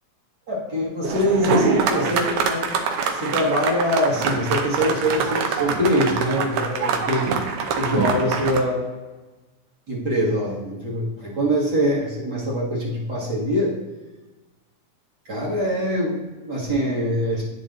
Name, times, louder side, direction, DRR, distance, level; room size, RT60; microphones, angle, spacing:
voice 1, 0.5-2.8 3.1-7.3 7.8-8.9 9.9-13.7 15.3-17.4, equal, 35° right, -6 dB, 2.2 m, -23 dB
sound 1, 1.0-8.6, right 5 dB, 75° right, 2.2 m, -24 dB
11.5 x 5.3 x 2.6 m, 1.2 s
omnidirectional pair, 3.8 m